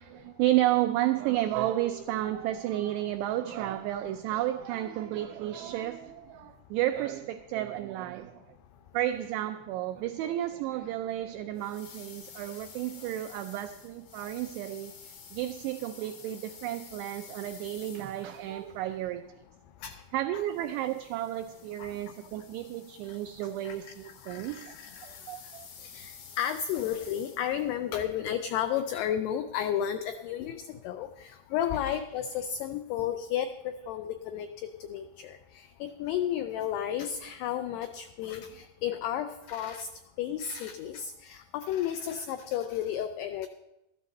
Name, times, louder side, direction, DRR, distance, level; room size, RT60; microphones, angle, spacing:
voice 1, 0.0-8.4 8.9-19.2 20.1-24.8 25.0-25.7, right 13 dB, 90° right, 8 dB, 2.4 m, -32 dB
sound 1, 11.6-18.6 20.5-27.7, left 6 dB, 70° left, 1.5 m, -51 dB
voice 2, 24.2-25.0 25.8-34.5 34.9-39.9 40.2-43.5, left 10 dB, 90° left, 8 dB, 2.3 m, -33 dB
14.0 x 13.0 x 4.1 m, 0.94 s
omnidirectional pair, 5.4 m